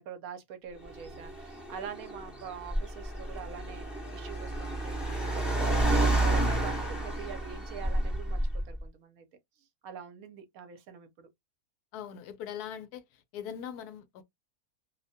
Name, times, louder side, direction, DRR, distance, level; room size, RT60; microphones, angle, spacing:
voice 1, 0.0-3.9 4.1-8.4 8.7-9.2 9.8-11.3, right 8 dB, 70° right, 1.1 m, -44 dB
Car, 0.8-8.8, right 1 dB, ahead, 0.7 m, -30 dB
voice 2, 11.9-13.0 13.3-14.2, left 9 dB, 85° left, 1.1 m, -40 dB
2.7 x 2.2 x 2.6 m
omnidirectional pair, 1.6 m